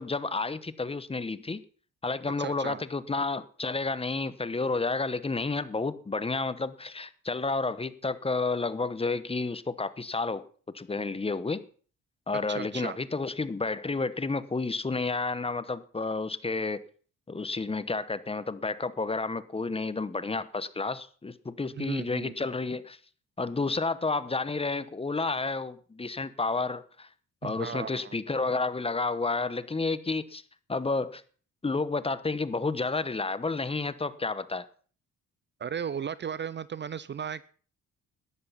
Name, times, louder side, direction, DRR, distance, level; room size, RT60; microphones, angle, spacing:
voice 1, 0.0-1.6 2.0-10.4 10.7-11.6 12.3-16.8 17.3-23.0 23.4-27.1 27.4-30.4 30.7-31.2 31.6-34.7, left 3 dB, 20° left, 1.0 m, -31 dB
voice 2, 2.4-2.8 12.5-13.0 21.7-22.4 27.4-28.2 35.6-37.5, right 7 dB, 35° right, 0.6 m, -35 dB
13.5 x 10.5 x 5.8 m
cardioid pair, 90°, 30 cm